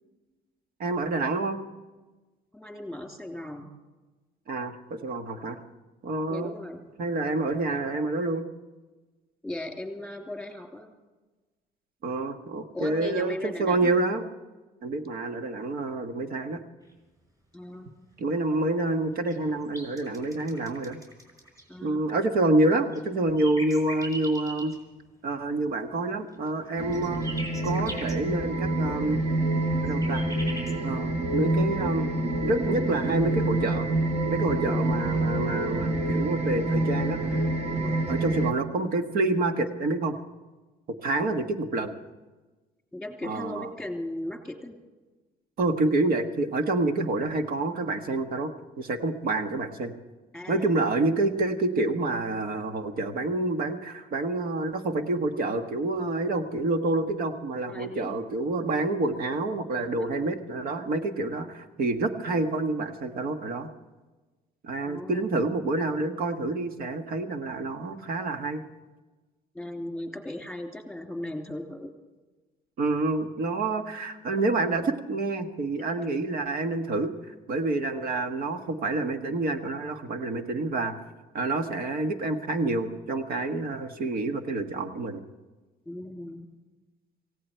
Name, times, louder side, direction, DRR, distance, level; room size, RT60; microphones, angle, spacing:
voice 1, 0.8-1.6 4.5-5.6 6.0-6.5 7.0-8.4 12.0-14.2 14.8-16.6 18.2-21.0 21.8-24.7 25.2-27.3 27.6-29.2 29.8-30.3 30.8-32.1 32.4-33.9 34.3-37.4 37.8-40.1 41.0-41.9 43.2-43.7 45.6-48.5 48.8-49.9 50.5-63.7 64.6-68.6 72.8-77.1 77.5-81.0 81.3-85.2, right 2 dB, 60° right, 7 dB, 1.6 m, -28 dB
voice 2, 2.5-3.7 6.3-6.8 9.4-10.9 12.7-14.0 17.5-17.9 21.7-22.0 34.6-34.9 37.7-38.0 42.9-44.8 50.3-50.8 57.7-58.3 60.0-60.3 62.2-62.5 64.8-65.3 69.5-71.9 85.8-86.5, left 1 dB, ahead, 3 dB, 3.1 m, -37 dB
sound 1, 19.3-21.6 22.9-24.8 26.3-28.2 29.7-30.7, right 1 dB, 20° right, 5.4 m, -40 dB
sound 2, 26.8-38.5, right 2 dB, 40° right, 1.4 m, -27 dB
18.0 x 16.5 x 4.6 m, 1.2 s
cardioid pair, 110°, 17 cm